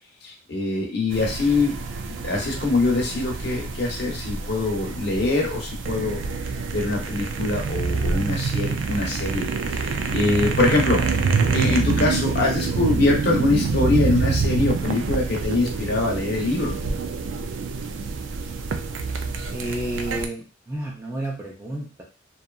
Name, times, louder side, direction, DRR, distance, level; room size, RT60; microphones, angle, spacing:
voice 1, 0.2-1.8 2.2-6.2 6.7-9.5 9.7-11.1 11.5-16.8, left 2 dB, 55° left, -1 dB, 0.8 m, -23 dB
sound 1, 1.1-20.3, right 4 dB, 75° right, 0.3 m, -26 dB
voice 2, 19.5-22.0, right 1 dB, 15° right, -3 dB, 0.5 m, -31 dB
2.8 x 2.3 x 2.3 m, 0.32 s
head